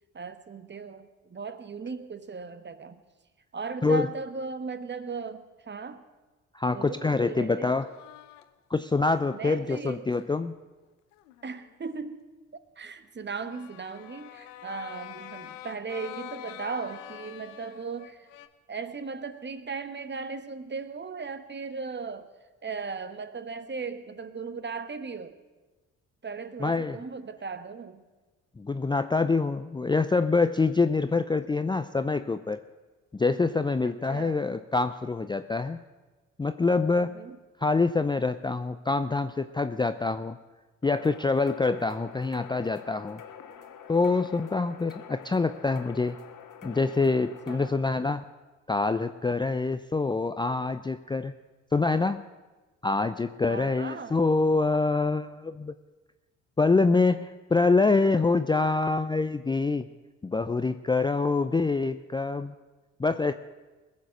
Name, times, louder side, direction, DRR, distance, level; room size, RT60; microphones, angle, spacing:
voice 1, 0.1-3.0 3.5-6.0 6.7-7.7 9.3-10.1 11.4-12.3 12.8-18.3 18.7-22.3 22.6-25.4 26.2-28.0 33.8-34.4 37.0-37.4 47.2-47.8 53.5-54.1, right 4 dB, 30° right, 12 dB, 1.2 m, -37 dB
voice 2, 6.5-7.9 8.7-10.5 26.6-27.0 28.6-32.6 33.1-35.8 36.4-37.2 37.6-40.4 40.8-43.2 43.9-46.2 46.6-48.3 48.7-51.3 51.7-52.2 52.8-55.7 56.6-59.9 60.2-62.5 63.0-63.3, left 3 dB, 15° left, 10 dB, 0.5 m, -25 dB
sound 1, 7.9-9.0 9.8-10.3 11.1-11.8 13.5-18.5, left 13 dB, 85° left, 0.8 m, -45 dB
sound 2, 40.8-47.7, left 8 dB, 55° left, 1.5 m, -46 dB
20.5 x 7.4 x 6.4 m, 1.2 s
hypercardioid pair, 50°, 37 cm